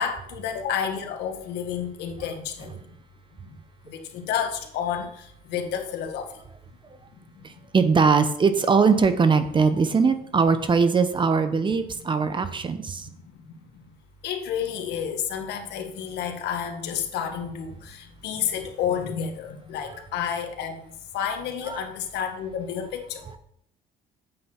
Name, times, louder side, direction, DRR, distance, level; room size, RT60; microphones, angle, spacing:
voice 1, 0.0-2.9 3.4-3.5 3.8-6.3 7.3-7.4 12.1-12.5 13.0-13.8 14.2-23.3, left 8 dB, 80° left, 4 dB, 1.7 m, -31 dB
voice 2, 7.4-13.1 21.7-21.8, right 5 dB, 30° right, 10 dB, 0.9 m, -21 dB
8.6 x 7.8 x 4.5 m, 0.70 s
cardioid pair, 110°, 17 cm